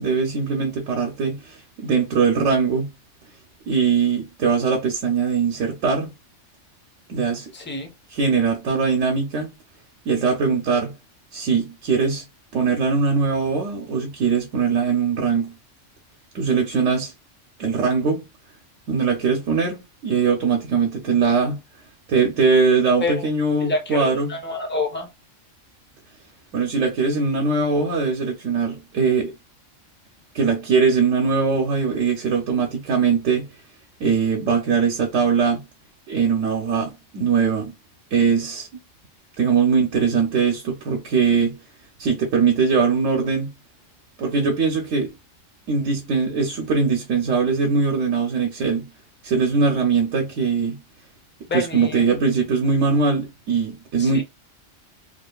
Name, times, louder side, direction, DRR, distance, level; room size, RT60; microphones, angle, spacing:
voice 1, 0.0-2.9 3.7-6.1 7.1-7.5 8.1-9.5 10.1-10.9 11.3-12.2 12.5-15.5 16.3-17.1 17.6-18.2 18.9-21.6 22.1-24.3 26.5-29.3 30.3-33.5 34.0-35.6 36.1-37.7 38.1-38.7 39.4-41.6 42.0-43.5 44.2-45.1 45.7-48.9 49.2-50.8 51.5-54.2, right 5 dB, 80° right, 1.0 m, -21 dB
voice 2, 7.5-7.9 23.0-23.3 23.6-25.1 51.5-52.0 54.0-54.2, left 3 dB, 15° left, 0.5 m, -28 dB
2.7 x 2.4 x 2.2 m
omnidirectional pair, 1.3 m